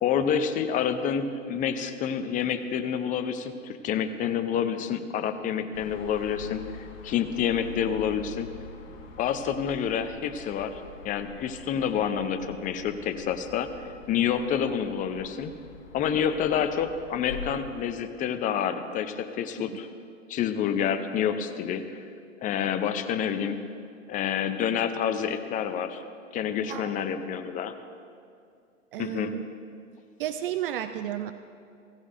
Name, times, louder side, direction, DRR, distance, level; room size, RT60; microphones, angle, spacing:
voice 1, 0.0-8.5 9.2-10.7 11.0-13.7 14.1-15.5 15.9-19.9 20.3-22.0 22.4-23.6 24.1-26.0 26.3-27.7 29.0-29.3, left 8 dB, 20° left, 9 dB, 0.6 m, -28 dB
sound 1, 5.7-17.9, left 5 dB, 45° left, 1.9 m, -45 dB
voice 2, 26.7-27.2 28.9-29.4 30.2-31.3, right 12 dB, 45° right, 10 dB, 0.5 m, -32 dB
16.0 x 16.0 x 2.6 m, 2.4 s
hypercardioid pair, 105°, 39 cm